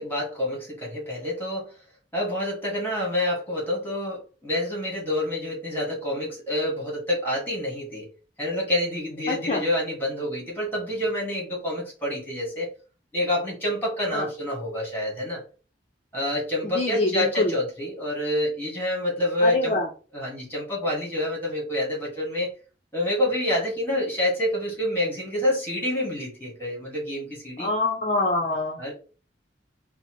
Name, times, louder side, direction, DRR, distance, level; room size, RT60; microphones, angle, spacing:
voice 1, 0.0-1.7 2.1-8.1 8.4-12.7 13.1-15.4 16.1-19.8 20.1-22.5 22.9-27.7 28.8-28.9, left 1 dB, 10° left, -3 dB, 1.8 m, -27 dB
voice 2, 9.3-9.6 14.1-14.3 16.6-17.6 19.4-19.9 27.6-28.8, left 2 dB, 35° left, 0 dB, 0.6 m, -25 dB
4.1 x 2.0 x 4.4 m, 0.36 s
head